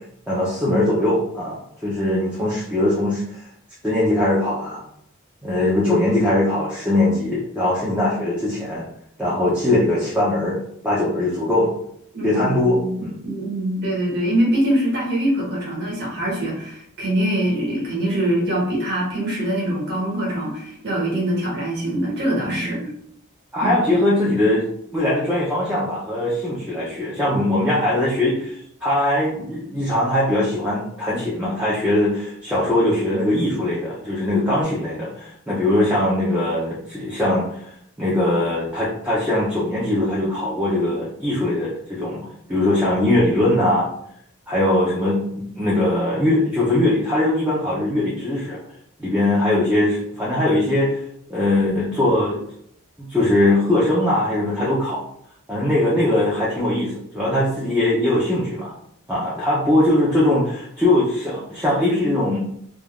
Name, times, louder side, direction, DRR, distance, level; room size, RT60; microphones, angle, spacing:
voice 1, 0.3-3.5 3.8-4.8 5.4-8.8 9.2-10.6 10.8-11.7 12.2-13.2 22.4-22.8 23.5-24.7 24.9-37.7 38.0-42.2 42.5-43.9 44.5-48.6 49.0-51.0 51.3-52.4 53.0-55.0 55.5-58.7 59.1-62.4, left 1 dB, 5° right, -8 dB, 0.5 m, -21 dB
voice 2, 12.1-13.0 13.2-22.9 23.6-23.7, right 1 dB, 50° right, -4 dB, 1.1 m, -23 dB
2.4 x 2.3 x 3.4 m, 0.69 s
head